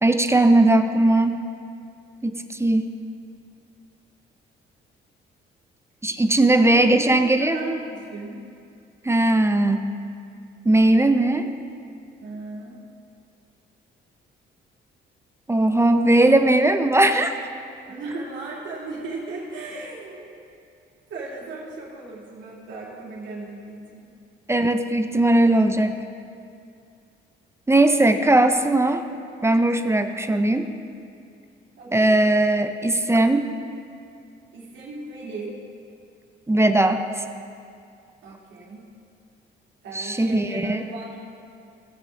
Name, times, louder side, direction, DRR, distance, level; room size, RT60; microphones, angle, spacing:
voice 1, 0.0-1.4 2.2-2.8 6.0-7.6 9.0-9.9 10.6-11.5 15.5-17.3 24.5-26.0 27.7-29.0 29.4-30.7 31.9-33.5 36.5-37.0 39.9-40.8, right 2 dB, 15° right, 8 dB, 0.6 m, -19 dB
voice 2, 6.5-8.4 12.2-12.8 17.9-20.3 21.1-24.1 31.8-32.3 34.5-35.5 38.2-38.8 39.8-41.2, right 3 dB, 70° right, -5 dB, 2.8 m, -36 dB
18.0 x 6.6 x 3.8 m, 2.4 s
cardioid pair, 90°, 20 cm